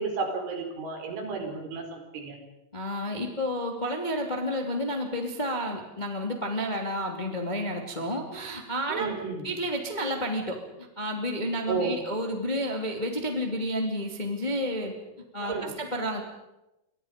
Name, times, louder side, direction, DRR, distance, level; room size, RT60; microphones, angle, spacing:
voice 1, 0.0-2.4 8.9-9.5 11.7-12.0 15.4-15.7, right 4 dB, 75° right, 3 dB, 6.9 m, -32 dB
voice 2, 2.7-9.1 9.4-14.9 15.3-16.2, equal, 15° left, 2 dB, 1.8 m, -31 dB
28.5 x 25.0 x 5.2 m, 0.95 s
omnidirectional pair, 5.5 m